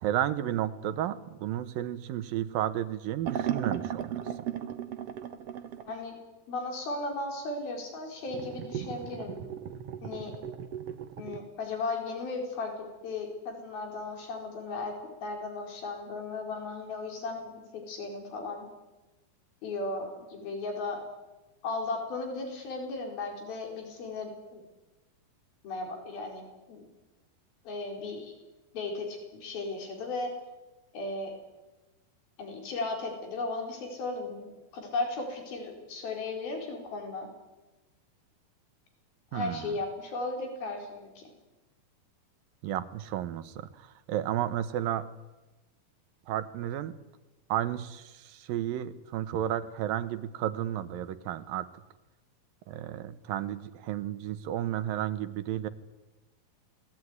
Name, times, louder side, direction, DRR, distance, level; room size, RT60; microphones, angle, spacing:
voice 1, 0.0-4.2 39.3-39.8 42.6-45.1 46.3-46.9 47.5-51.7 52.7-55.7, right 11 dB, 75° right, 13 dB, 2.9 m, -32 dB
sound 1, 3.2-5.9 8.3-11.4, right 9 dB, 60° right, 1.8 m, -36 dB
voice 2, 5.8-6.2 6.5-9.4 10.0-10.3 11.2-14.9 15.2-18.7 19.6-21.0 21.6-24.6 25.6-26.9 27.6-28.3 28.7-30.3 30.9-31.3 32.4-37.3 39.3-41.2, left 3 dB, 80° left, 3 dB, 6.5 m, -36 dB
27.5 x 19.5 x 9.6 m, 1.1 s
omnidirectional pair, 4.2 m